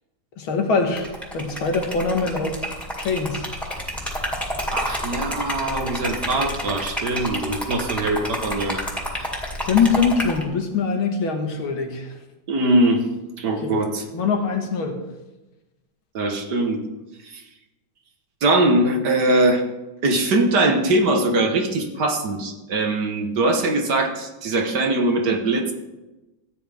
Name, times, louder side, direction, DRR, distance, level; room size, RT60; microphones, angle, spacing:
voice 1, 0.4-1.1 1.3-2.6 3.0-3.5 9.6-12.1 13.6-13.8 14.1-15.0, left 5 dB, 85° left, 4 dB, 2.2 m, -23 dB
Liquid, 0.9-10.4, equal, ahead, 2.0 m, -29 dB
voice 2, 4.7-8.8 12.5-13.0 13.4-14.0 16.1-16.8 17.3-17.4 18.4-19.6 20.0-25.7, right 2 dB, 60° right, 4 dB, 1.7 m, -21 dB
14.5 x 9.4 x 3.5 m, 1.0 s
omnidirectional pair, 2.2 m